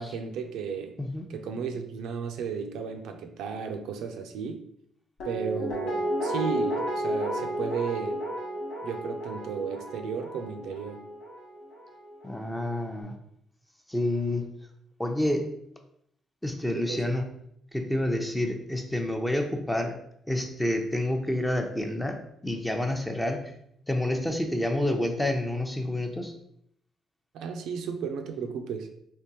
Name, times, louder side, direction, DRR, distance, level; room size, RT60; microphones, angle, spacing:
voice 1, 0.0-1.0 1.3-4.6 5.2-8.2 8.8-11.0 16.7-17.2 27.3-28.9, right 6 dB, 85° right, 5 dB, 0.4 m, -34 dB
Guitar, 5.2-12.2 12.5-12.6, equal, 80° left, 1.2 m, -32 dB
voice 2, 12.2-13.1 13.9-14.5 15.0-15.5 16.4-17.2 17.7-19.9 20.3-22.2 22.4-23.4 23.9-26.3, left 1 dB, 10° left, 3 dB, 0.6 m, -28 dB
3.5 x 2.9 x 2.8 m, 0.71 s
cardioid pair, 90°, 0 cm